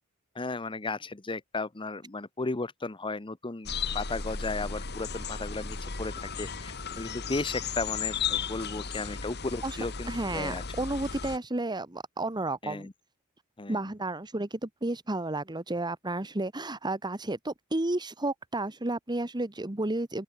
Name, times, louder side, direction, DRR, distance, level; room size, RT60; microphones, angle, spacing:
voice 1, 0.3-3.7 3.9-10.6 12.6-12.9 13.6-13.8, left 3 dB, 25° left, 0.9 m, -35 dB
sound 1, 3.7-11.4, left 6 dB, 50° left, 2.8 m, -35 dB
voice 2, 10.1-12.9 13.7-20.2, right 2 dB, 20° right, 1.3 m, -32 dB
open air
head